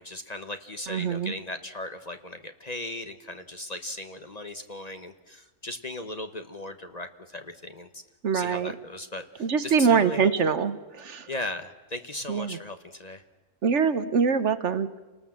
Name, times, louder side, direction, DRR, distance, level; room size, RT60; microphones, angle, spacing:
voice 1, 0.0-8.0 8.3-10.5 11.3-13.2, left 1 dB, 35° left, 8 dB, 1.1 m, -37 dB
voice 2, 0.9-1.3 8.2-8.7 9.4-11.3 12.3-12.6 13.6-14.9, right 6 dB, 60° right, 12 dB, 1.2 m, -24 dB
29.0 x 19.5 x 7.5 m, 1.2 s
omnidirectional pair, 1.4 m